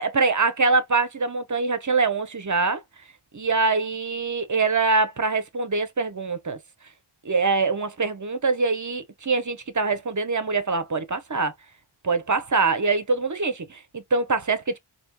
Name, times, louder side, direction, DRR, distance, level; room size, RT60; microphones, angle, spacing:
voice 1, 0.0-2.8 3.3-6.6 7.2-11.5 12.0-14.8, right 4 dB, 35° right, 0.8 m, -24 dB
4.3 x 2.9 x 2.2 m
wide cardioid pair, 65°, 50 cm